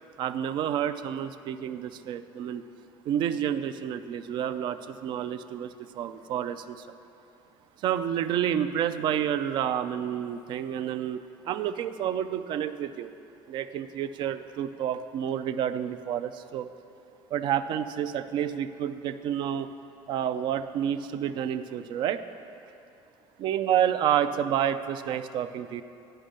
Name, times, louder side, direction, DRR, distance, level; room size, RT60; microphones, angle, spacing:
voice 1, 0.2-2.6 3.1-6.9 7.8-13.1 13.5-16.7 17.3-19.7 20.1-22.2 23.4-25.8, right 9 dB, 55° right, 11 dB, 0.4 m, -29 dB
10.0 x 5.4 x 6.5 m, 2.7 s
cardioid pair, 150°, 10 cm